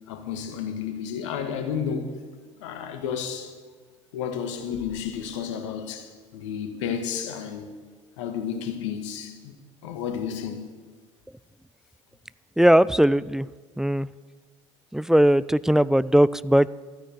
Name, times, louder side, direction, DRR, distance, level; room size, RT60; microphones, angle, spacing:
voice 1, 0.1-2.1 2.6-3.5 4.1-7.7 8.2-9.5 9.8-10.7, left 7 dB, 70° left, 1.6 m, -31 dB
voice 2, 12.6-13.5 13.8-14.1 14.9-16.7, right 1 dB, 5° right, 0.3 m, -19 dB
13.0 x 9.9 x 7.8 m
figure-of-eight pair, 60°, 16 cm